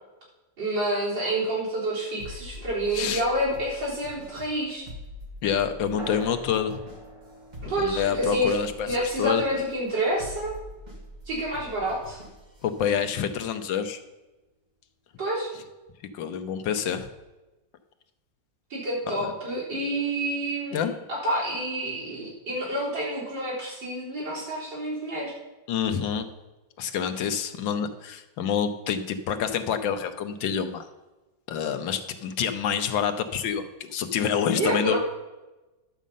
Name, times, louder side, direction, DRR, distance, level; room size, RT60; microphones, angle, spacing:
voice 1, 0.6-4.9 7.6-8.5 8.9-10.5 11.3-12.2 15.2-15.5 18.7-20.8 21.1-25.3 34.5-35.0, right 1 dB, 75° right, -5 dB, 4.7 m, -28 dB
sound 1, 2.2-12.9, equal, 25° right, 2.1 m, -44 dB
voice 2, 5.4-6.8 7.6-9.4 12.6-14.0 16.1-17.1 19.1-19.3 20.7-21.0 25.7-26.2 26.8-30.8 31.5-35.0, left 8 dB, 80° left, 8 dB, 1.6 m, -27 dB
sound 2, 6.0-11.0, right 1 dB, 40° right, 3.4 m, -45 dB
11.5 x 7.4 x 5.4 m, 1.1 s
omnidirectional pair, 2.0 m